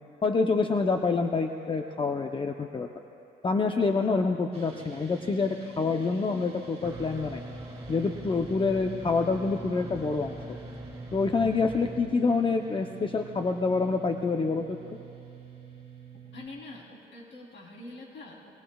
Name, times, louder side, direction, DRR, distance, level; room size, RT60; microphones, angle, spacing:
voice 1, 0.2-2.9 3.4-7.4 7.9-10.4 11.1-14.8, left 4 dB, 25° left, 4 dB, 0.7 m, -27 dB
sound 1, 4.5-16.5, right 6 dB, 30° right, 4.7 m, -48 dB
sound 2, 6.8-12.0, equal, 15° right, 2.4 m, -42 dB
voice 2, 16.3-18.5, left 2 dB, 65° left, -3 dB, 3.4 m, -45 dB
25.5 x 22.0 x 2.3 m, 2.7 s
cardioid pair, 90°, 20 cm